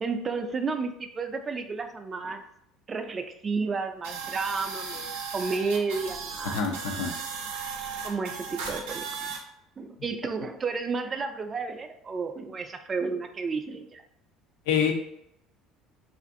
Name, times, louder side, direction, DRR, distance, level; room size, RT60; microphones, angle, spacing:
voice 1, 0.0-2.4 2.9-6.6 8.0-9.4 9.8-14.0, right 4 dB, 30° right, 7 dB, 0.3 m, -32 dB
sound 1, 4.0-9.4, right 5 dB, 90° right, 0.5 m, -36 dB
voice 2, 6.4-7.1 14.7-14.9, left 7 dB, 85° left, 3 dB, 0.4 m, -26 dB
2.5 x 2.5 x 2.5 m, 0.77 s
supercardioid pair, 90°, 0 cm